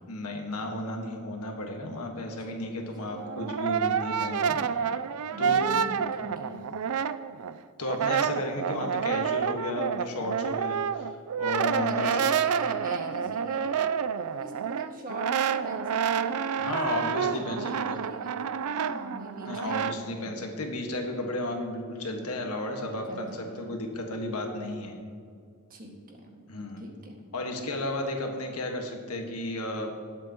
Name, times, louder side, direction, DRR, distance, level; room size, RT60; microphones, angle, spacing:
voice 1, 0.1-4.9 5.4-5.7 7.8-12.3 16.6-17.7 19.4-24.9 26.5-26.8 27.3-29.9, left 1 dB, 80° left, 2 dB, 1.6 m, -33 dB
voice 2, 2.4-3.2 5.3-6.6 11.7-14.0 14.4-20.3 23.1-23.8 25.7-26.3 26.8-27.2, right 1 dB, 40° right, 0 dB, 1.8 m, -42 dB
Brass instrument, 3.1-7.5 7.8-20.0, right 7 dB, 75° right, 0.4 m, -29 dB
19.5 x 8.0 x 3.0 m, 2.2 s
head